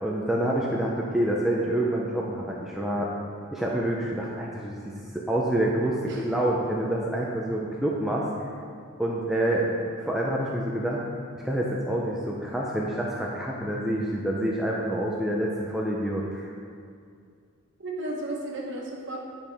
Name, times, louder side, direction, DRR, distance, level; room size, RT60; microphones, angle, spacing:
voice 1, 0.0-3.1 3.5-8.3 9.0-11.0 11.4-16.5, right 1 dB, ahead, -4 dB, 0.5 m, -27 dB
voice 2, 17.8-19.2, right 1 dB, 55° right, -2 dB, 1.3 m, -33 dB
10.5 x 5.4 x 3.4 m, 2.3 s
head